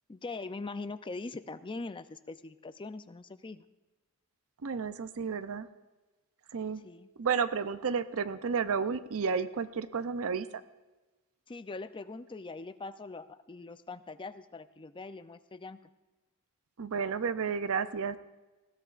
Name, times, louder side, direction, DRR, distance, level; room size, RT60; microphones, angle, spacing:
voice 1, 0.1-3.6 6.8-7.1 11.5-15.8, left 3 dB, 20° left, 12 dB, 0.5 m, -42 dB
voice 2, 4.6-5.7 6.5-6.8 7.2-10.6 16.8-18.2, right 6 dB, 65° right, 12 dB, 0.6 m, -32 dB
20.5 x 17.0 x 2.5 m, 1.2 s
head